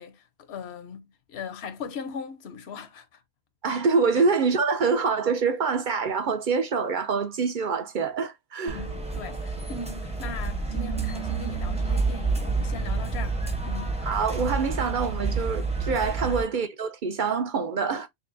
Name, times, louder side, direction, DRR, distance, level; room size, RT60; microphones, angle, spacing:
voice 1, 0.0-3.2 4.1-4.3 8.7-14.0 16.2-16.4, left 4 dB, 80° left, 1.0 m, -39 dB
voice 2, 3.6-8.8 14.0-18.1, right 5 dB, 55° right, 0.7 m, -25 dB
sound 1, 8.7-16.4, right 3 dB, 5° right, 0.6 m, -29 dB
sound 2, 8.7-16.5, right 6 dB, 80° right, 1.3 m, -42 dB
5.3 x 2.2 x 2.5 m
omnidirectional pair, 1.1 m